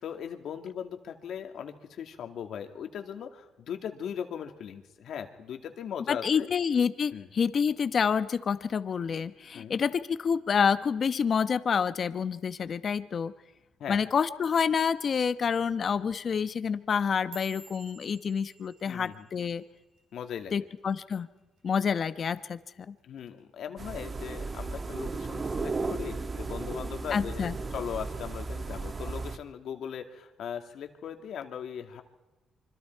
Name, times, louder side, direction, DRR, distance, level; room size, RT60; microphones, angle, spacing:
voice 1, 0.0-6.5 7.1-7.3 9.5-9.8 13.8-14.0 18.9-19.3 20.1-20.7 23.0-32.0, left 8 dB, 70° left, 5 dB, 2.4 m, -39 dB
voice 2, 6.1-13.3 13.9-19.6 20.5-21.3 21.6-22.6 22.9-23.0 27.1-27.6, left 6 dB, 50° left, 12 dB, 1.0 m, -28 dB
sound 1, 16.9-21.3 21.6-22.0 22.4-22.8 23.2-23.4 24.0-24.4 24.8-25.6 26.0-26.4 27.2-27.3, right 1 dB, 85° right, 5.9 m, -53 dB
sound 2, 23.8-29.4, right 3 dB, 35° right, 1.5 m, -35 dB
26.0 x 25.0 x 4.7 m, 1.1 s
cardioid pair, 90°, 0 cm